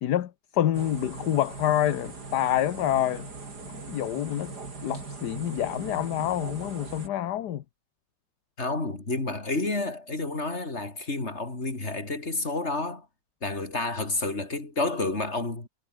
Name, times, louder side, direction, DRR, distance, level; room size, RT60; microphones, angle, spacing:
voice 1, 0.0-3.3 3.7-4.5 4.8-7.6, left 12 dB, 70° left, 1.5 m, -27 dB
sound 1, 0.7-7.1, right 3 dB, 60° right, 4.3 m, -40 dB
voice 2, 8.6-13.1 13.4-15.7, left 2 dB, 35° left, 4.4 m, -30 dB
omnidirectional pair, 1.9 m